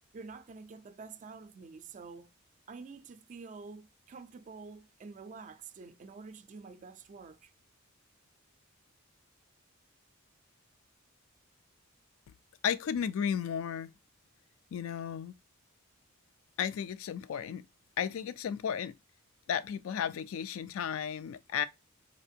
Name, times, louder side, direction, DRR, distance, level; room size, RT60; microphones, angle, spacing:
voice 1, 0.1-2.3 2.7-7.5, right 4 dB, 35° right, 0.4 m, -48 dB
voice 2, 12.6-13.9 14.7-15.4 16.6-17.6 18.0-18.9 19.5-21.7, left 8 dB, 65° left, 0.3 m, -34 dB
4.2 x 2.4 x 2.6 m
head